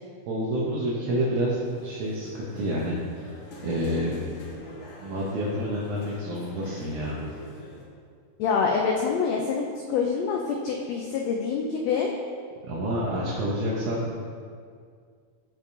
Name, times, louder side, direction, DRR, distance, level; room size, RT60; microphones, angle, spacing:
voice 1, 0.3-4.1 5.0-7.1 12.7-14.4, equal, 75° right, -5 dB, 2.2 m, -28 dB
sound 1, 1.6-7.8, left 1 dB, 65° left, 2.0 m, -45 dB
voice 2, 8.4-12.1, left 5 dB, 90° left, 1 dB, 1.5 m, -26 dB
13.5 x 4.6 x 2.7 m, 2.1 s
omnidirectional pair, 3.6 m